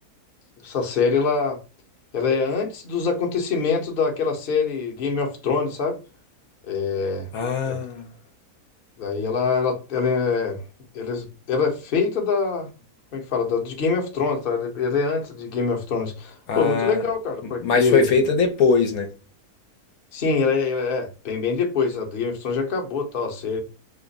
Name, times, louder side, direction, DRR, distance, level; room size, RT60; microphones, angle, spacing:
voice 1, 0.6-1.6 2.1-6.0 6.7-7.3 7.6-7.8 9.0-10.6 10.9-12.7 13.1-18.1 20.1-23.6, left 5 dB, 45° left, 0.9 m, -24 dB
voice 2, 7.3-8.1 16.5-17.0 17.4-19.1, left 4 dB, 70° left, 1.1 m, -21 dB
3.2 x 2.5 x 3.9 m
omnidirectional pair, 1.6 m